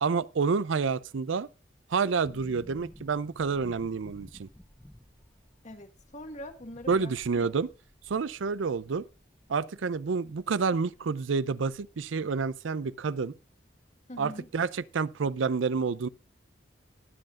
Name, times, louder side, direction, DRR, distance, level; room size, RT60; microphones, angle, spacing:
voice 1, 0.0-1.5 1.9-4.5 6.9-7.7 8.1-9.0 9.5-13.3 14.2-16.1, right 5 dB, 85° right, 0.5 m, -29 dB
sound 1, 2.2-11.1 11.3-11.4 11.7-12.7 13.0-13.1, equal, 5° left, 0.6 m, -54 dB
voice 2, 5.6-7.5 14.1-14.5, left 1 dB, 40° left, 1.5 m, -43 dB
20.5 x 7.7 x 2.5 m
head